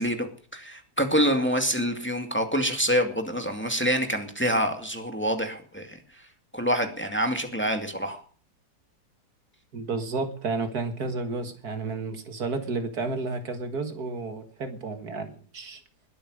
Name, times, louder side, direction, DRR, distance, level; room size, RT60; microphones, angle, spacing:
voice 1, 0.0-6.0 6.5-8.2, equal, 5° left, 5 dB, 2.2 m, -26 dB
voice 2, 9.7-15.8, right 3 dB, 70° right, 8 dB, 2.2 m, -31 dB
21.0 x 9.0 x 6.5 m, 0.43 s
omnidirectional pair, 1.7 m